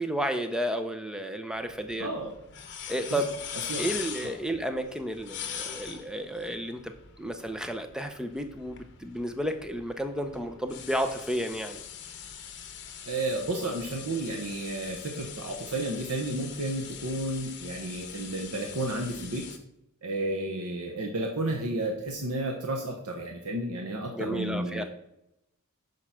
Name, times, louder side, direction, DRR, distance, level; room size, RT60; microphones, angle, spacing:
voice 1, 0.0-2.1 2.9-3.4 3.8-11.8 24.1-24.8, equal, 5° right, 7 dB, 0.6 m, -32 dB
sound 1, 1.5-19.6, left 8 dB, 55° left, 1.0 m, -42 dB
voice 2, 2.0-2.3 3.1-3.2 3.5-3.8 4.2-4.3 5.6-5.7 13.0-19.4 20.0-24.9, right 2 dB, 85° right, 1 dB, 1.0 m, -32 dB
6.7 x 4.8 x 5.8 m, 0.85 s
head